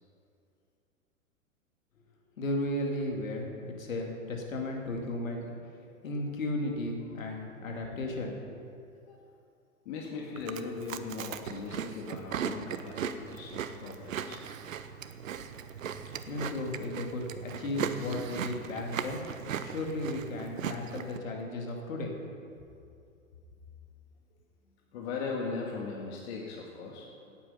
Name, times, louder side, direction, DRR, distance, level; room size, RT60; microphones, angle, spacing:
voice 1, 2.4-5.5 6.0-8.6 16.3-22.1, left 1 dB, 70° left, 1 dB, 2.6 m, -35 dB
voice 2, 7.3-7.6 8.9-9.2 9.9-14.4 22.8-22.9 24.9-27.4, left 4 dB, 50° left, -1 dB, 2.0 m, -39 dB
Chewing mastication, 10.4-21.2, right 8 dB, 70° right, 0.9 m, -38 dB
17.5 x 8.5 x 5.5 m, 2.4 s
figure-of-eight pair, 105°, 41 cm